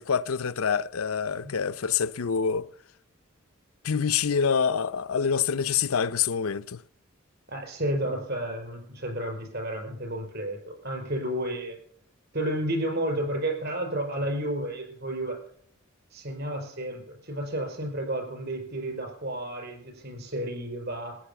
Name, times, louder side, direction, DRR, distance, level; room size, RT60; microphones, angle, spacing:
voice 1, 0.0-2.7 3.8-6.8, left 6 dB, 85° left, 0.6 m, -26 dB
voice 2, 7.5-11.8 12.3-15.4 16.1-21.2, right 1 dB, 50° right, 5.3 m, -31 dB
15.0 x 9.8 x 6.9 m
head